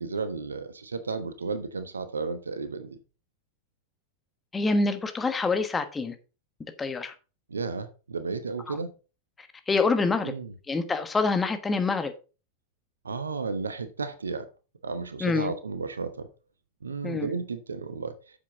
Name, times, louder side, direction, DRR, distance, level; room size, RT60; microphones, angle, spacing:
voice 1, 0.0-3.0 7.5-9.0 10.2-10.5 13.0-14.5 14.8-16.3 16.8-18.1, right 4 dB, 75° right, 1.1 m, -33 dB
voice 2, 4.5-6.1 6.6-7.1 8.7-8.8 9.7-10.3 10.7-12.1 15.2-15.5 17.0-17.3, left 3 dB, 15° left, 1.3 m, -26 dB
8.7 x 7.3 x 3.8 m
figure-of-eight pair, 90°, 0 cm